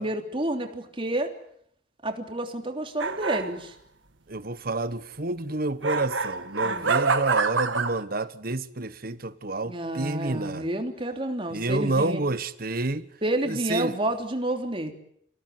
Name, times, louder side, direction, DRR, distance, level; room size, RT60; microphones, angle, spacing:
voice 1, 0.0-1.3 2.0-3.7 6.6-6.9 9.6-12.2 13.2-14.9, right 1 dB, 30° right, 3.3 m, -29 dB
sound 1, 3.0-3.6 5.8-8.0, right 4 dB, 85° right, 1.7 m, -26 dB
voice 2, 4.3-10.7 11.5-13.1 13.5-13.9, right 2 dB, 50° right, 1.3 m, -29 dB
29.5 x 17.0 x 9.6 m
head